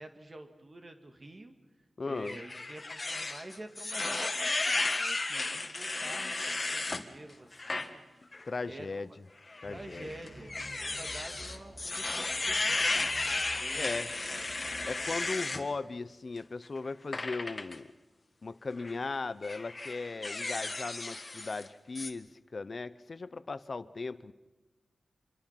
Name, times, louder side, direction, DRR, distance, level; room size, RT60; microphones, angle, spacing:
voice 1, 0.0-1.5 2.0-9.2 9.7-14.0 14.3-14.5, right 1 dB, 40° right, 6 dB, 2.2 m, -48 dB
voice 2, 2.0-2.4 8.4-9.1 9.6-10.1 13.7-14.1 14.8-17.9 18.4-24.3, left 3 dB, 55° left, 15 dB, 0.8 m, -37 dB
sound 1, 2.2-7.0 7.5-7.9 8.3-8.4 9.5-15.6 17.1-17.8 18.7-19.0 19.4-21.7 22.0-22.1, left 2 dB, 35° left, 1.8 m, -34 dB
sound 2, 9.6-15.2, right 1 dB, 80° right, 6.8 m, -51 dB
26.5 x 23.0 x 5.9 m, 1.1 s
wide cardioid pair, 85°, 0 cm